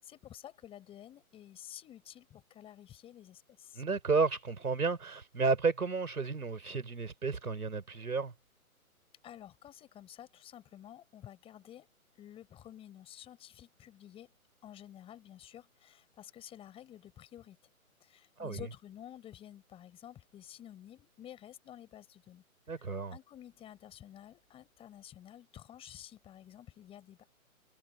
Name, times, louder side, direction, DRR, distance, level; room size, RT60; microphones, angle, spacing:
voice 1, 0.0-3.8 9.2-14.3 14.6-17.6 18.0-22.4 22.7-27.3, left 11 dB, 15° left, 6.9 m, -51 dB
voice 2, 3.8-8.3 18.4-18.7 22.7-23.2, right 4 dB, 90° right, 5.4 m, -32 dB
hypercardioid pair, 155°, 43 cm